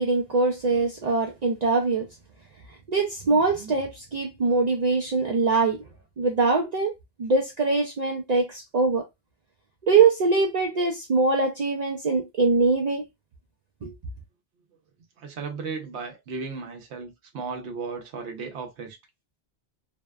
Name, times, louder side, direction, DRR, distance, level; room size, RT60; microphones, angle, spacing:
voice 1, 0.0-2.1 2.9-5.8 6.2-9.0 9.8-13.0 13.8-13.9, right 4 dB, 55° right, 0.5 m, -23 dB
voice 2, 15.2-19.0, right 4 dB, 80° right, 1.0 m, -35 dB
2.6 x 2.1 x 2.2 m
omnidirectional pair, 1.1 m